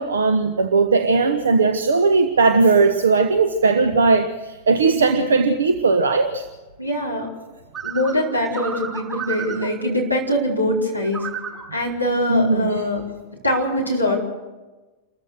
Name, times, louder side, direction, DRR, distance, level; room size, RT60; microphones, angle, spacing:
voice 1, 0.0-6.5 12.3-12.8, right 4 dB, 70° right, 9 dB, 1.0 m, -18 dB
voice 2, 4.9-5.2 6.8-7.3 7.8-11.3 11.7-13.0 13.4-14.2, left 1 dB, 90° right, -1 dB, 4.6 m, -23 dB
sound 1, 7.7-9.7 11.0-11.6, right 7 dB, 25° right, 5.6 m, -31 dB
28.0 x 14.5 x 6.6 m, 1.2 s
figure-of-eight pair, 90°, 0 cm